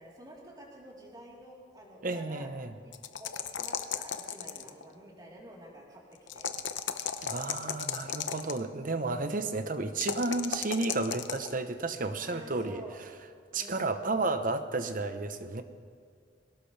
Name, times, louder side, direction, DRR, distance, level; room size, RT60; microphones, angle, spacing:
voice 1, 0.0-2.5 2.8-2.9 3.2-6.5 7.5-8.3 12.2-13.0 13.5-14.0, right 1 dB, 20° right, -4 dB, 3.8 m, -50 dB
voice 2, 2.0-2.7 7.2-12.8 13.5-15.6, right 3 dB, 45° right, 9 dB, 1.0 m, -32 dB
sound 1, 2.9-4.8 6.3-8.6 10.0-11.5, left 8 dB, 80° left, 0.8 m, -35 dB
22.5 x 18.5 x 3.4 m, 2.1 s
head